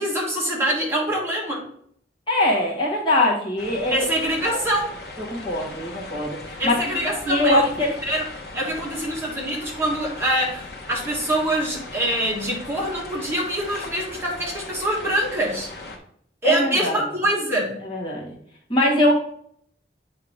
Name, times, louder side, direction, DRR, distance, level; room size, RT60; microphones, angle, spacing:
voice 1, 0.0-1.6 3.9-4.9 6.6-7.6 8.0-8.2 8.5-15.7 16.4-17.8, right 1 dB, 15° right, -3 dB, 1.5 m, -24 dB
voice 2, 2.3-4.0 4.5-4.6 5.2-8.0 16.4-17.0 17.8-18.4 18.7-19.1, left 1 dB, 30° left, -4 dB, 1.4 m, -22 dB
sound 1, 3.6-16.0, left 2 dB, 65° left, 1.1 m, -38 dB
8.4 x 2.9 x 5.0 m, 0.65 s
head